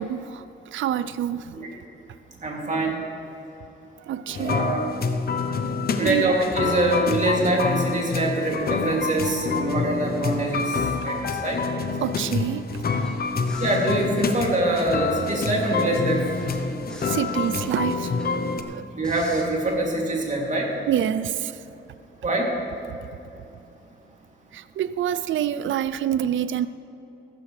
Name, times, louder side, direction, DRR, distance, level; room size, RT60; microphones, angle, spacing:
voice 1, 0.0-1.6 4.1-4.7 6.0-6.4 9.6-9.8 10.7-10.8 12.0-12.8 17.0-19.0 20.9-21.6 22.9-23.1 24.5-26.7, right 10 dB, 75° right, 14 dB, 0.4 m, -27 dB
voice 2, 2.4-2.9 4.4-4.9 6.0-11.6 13.6-16.2 18.9-20.7 22.2-22.5, right 2 dB, 40° right, -2 dB, 2.8 m, -24 dB
sound 1, 4.3-18.6, left 4 dB, 50° left, 0.8 m, -27 dB
sound 2, 12.9-15.2 15.6-18.6 19.0-19.4, left 1 dB, 5° left, 2.6 m, -40 dB
15.0 x 13.0 x 3.3 m, 2.9 s
cardioid pair, 90°, 20 cm